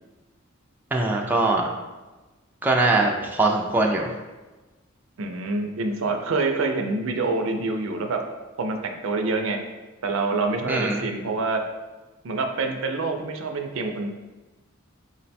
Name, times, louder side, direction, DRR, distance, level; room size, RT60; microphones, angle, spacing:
voice 1, 0.9-1.7 2.6-4.1 10.7-11.1, right 2 dB, 10° right, -1 dB, 0.4 m, -22 dB
voice 2, 5.2-8.2 8.6-9.6 10.0-11.6 12.2-14.1, right 3 dB, 70° right, 4 dB, 0.5 m, -26 dB
4.8 x 2.2 x 4.1 m, 1.2 s
head